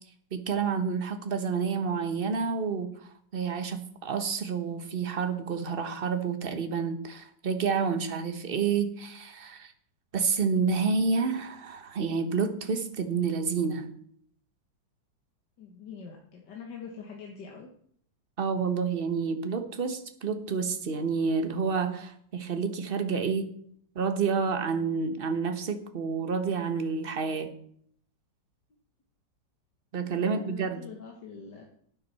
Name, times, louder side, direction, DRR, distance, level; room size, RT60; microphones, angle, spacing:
voice 1, 0.3-2.9 3.3-9.7 10.1-13.9 18.4-23.5 23.9-27.6 29.9-30.8, right 5 dB, 35° right, 8 dB, 1.1 m, -29 dB
voice 2, 15.6-17.7 30.0-31.7, left 5 dB, 70° left, 1 dB, 2.0 m, -44 dB
12.0 x 9.6 x 4.3 m, 0.63 s
omnidirectional pair, 2.0 m